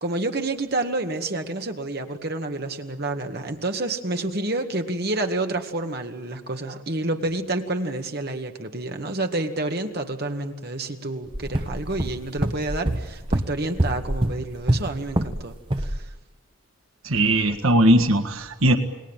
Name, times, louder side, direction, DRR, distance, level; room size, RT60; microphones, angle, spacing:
voice 1, 0.0-16.1, right 2 dB, 50° right, 5 dB, 2.0 m, -29 dB
sound 1, 11.3-15.4 15.7-16.0, right 1 dB, 25° right, 1.0 m, -25 dB
voice 2, 17.0-18.8, right 1 dB, 80° right, 8 dB, 1.7 m, -19 dB
29.0 x 21.0 x 9.0 m, 1.1 s
head